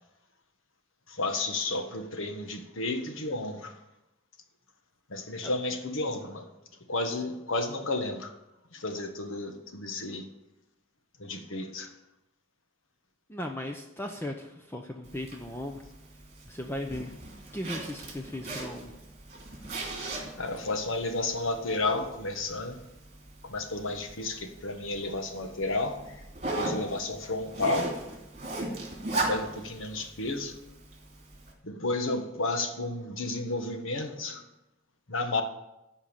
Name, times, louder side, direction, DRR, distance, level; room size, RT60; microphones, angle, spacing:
voice 1, 1.1-3.7 5.1-6.5 6.9-8.3 8.7-10.2 11.2-11.9 20.4-22.8 23.4-26.2 26.5-27.9 29.1-30.6 31.6-34.4 35.1-35.4, left 2 dB, 75° left, 6 dB, 1.5 m, -32 dB
voice 2, 13.3-15.9 16.5-17.1 17.5-18.9, left 1 dB, 10° left, 3 dB, 0.7 m, -37 dB
Zipper (clothing), 15.0-31.5, right 2 dB, 30° right, 3.1 m, -39 dB
13.5 x 5.4 x 8.9 m, 0.93 s
head